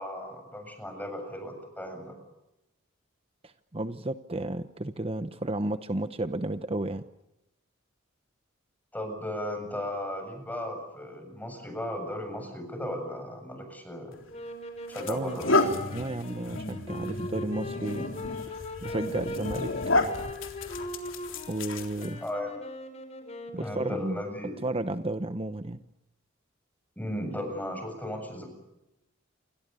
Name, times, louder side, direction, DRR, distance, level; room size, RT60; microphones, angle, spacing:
voice 1, 0.0-2.2 8.9-14.2 14.9-15.6 22.2-22.5 23.6-24.5 27.0-28.5, left 1 dB, 10° left, 5 dB, 7.4 m, -36 dB
voice 2, 3.4-7.0 15.1-15.4 15.9-18.1 18.8-19.7 21.5-22.2 23.5-24.2 24.6-25.8, right 2 dB, 30° right, 11 dB, 0.9 m, -32 dB
sound 1, 14.1-14.3 14.9-22.3, left 2 dB, 65° left, 3.7 m, -31 dB
sound 2, 14.3-24.3, left 1 dB, 30° left, 4.8 m, -40 dB
29.0 x 26.0 x 6.9 m, 0.92 s
head